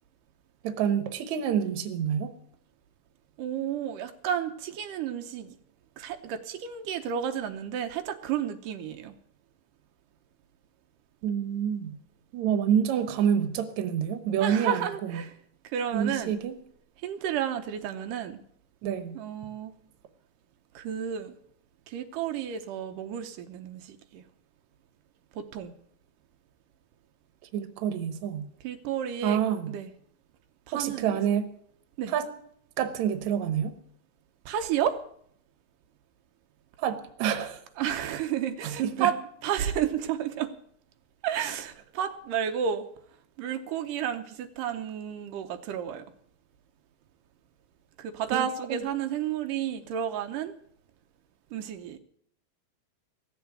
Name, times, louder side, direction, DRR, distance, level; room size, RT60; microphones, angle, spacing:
voice 1, 0.6-2.3 11.2-12.0 12.3-15.1 15.9-16.5 18.8-19.2 27.5-28.5 29.2-29.7 30.7-31.5 32.1-32.3 32.8-33.7 36.8-37.6 38.8-39.1 48.3-48.8, right 8 dB, 70° right, 9 dB, 2.4 m, -27 dB
voice 2, 3.4-5.6 6.0-9.1 14.4-15.3 15.6-16.3 17.0-18.4 19.1-19.7 20.7-21.4 21.9-24.2 25.4-25.7 28.6-29.4 29.7-29.9 30.7-31.2 32.0-32.1 34.5-35.0 37.8-39.1 39.4-40.5 41.2-42.9 43.4-46.1 48.0-50.5 51.5-52.0, right 9 dB, 85° right, 6 dB, 2.5 m, -31 dB
15.5 x 7.3 x 8.8 m, 0.65 s
omnidirectional pair, 3.7 m